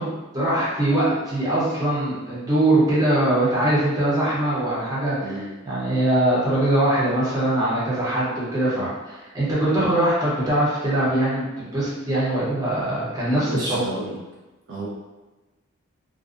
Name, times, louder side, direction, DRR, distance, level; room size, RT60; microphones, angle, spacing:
voice 1, 0.0-13.8, right 1 dB, 20° right, -8 dB, 0.7 m, -22 dB
voice 2, 5.2-5.5 13.4-14.2 14.7-14.9, right 1 dB, 60° right, -5 dB, 0.5 m, -32 dB
2.5 x 2.1 x 2.4 m, 1.1 s
head